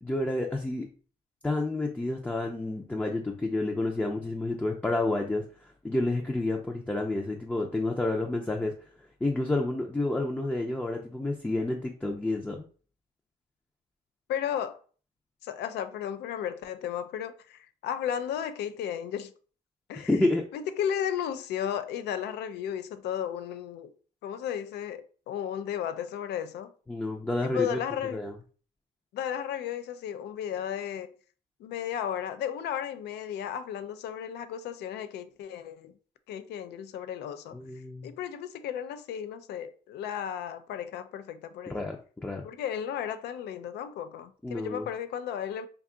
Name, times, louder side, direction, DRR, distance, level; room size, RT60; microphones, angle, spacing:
voice 1, 0.0-0.9 1.4-5.4 5.8-8.7 9.2-12.6 20.0-20.4 26.9-27.8 28.1-28.3 37.5-38.1 41.7-42.0 42.2-42.4 44.4-44.9, left 2 dB, 10° left, 0.5 m, -29 dB
voice 2, 14.3-14.8 15.4-19.3 19.9-20.1 20.5-23.9 24.2-26.7 27.4-28.2 29.1-31.1 31.6-35.9 36.3-37.6 38.0-41.8 42.4-45.7, left 9 dB, 75° left, 0.4 m, -34 dB
2.6 x 2.3 x 3.7 m
cardioid pair, 80°, 17 cm